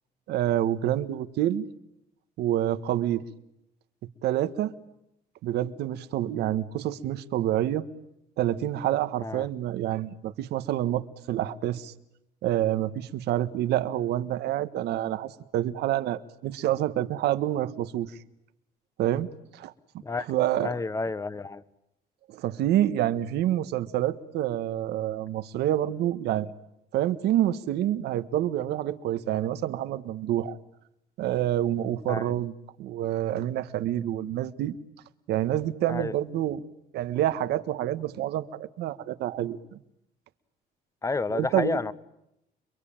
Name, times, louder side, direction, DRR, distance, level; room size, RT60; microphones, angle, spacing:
voice 1, 0.3-1.6 2.4-3.2 4.2-4.7 5.4-7.8 8.4-11.9 12.4-18.1 19.0-19.3 19.5-19.7 20.3-20.7 22.3-26.5 26.9-30.6 31.2-32.5 32.8-34.8 35.3-36.6 36.9-39.6 41.3-41.8, right 12 dB, 75° right, 1.5 m, -27 dB
voice 2, 20.6-21.6 32.1-32.2 35.9-36.1 41.0-41.9, left 3 dB, 20° left, 1.2 m, -30 dB
29.0 x 22.5 x 8.9 m
cardioid pair, 110°, 17 cm